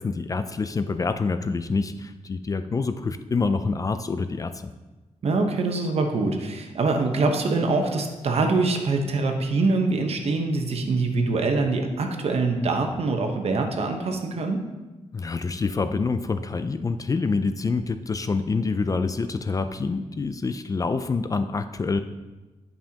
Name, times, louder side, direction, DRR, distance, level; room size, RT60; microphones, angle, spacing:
voice 1, 0.0-4.7 15.1-22.0, left 4 dB, 30° left, 10 dB, 0.3 m, -26 dB
voice 2, 5.2-14.6, right 3 dB, 60° right, 4 dB, 1.0 m, -24 dB
11.0 x 5.5 x 2.9 m, 1.2 s
wide cardioid pair, 115°, 12 cm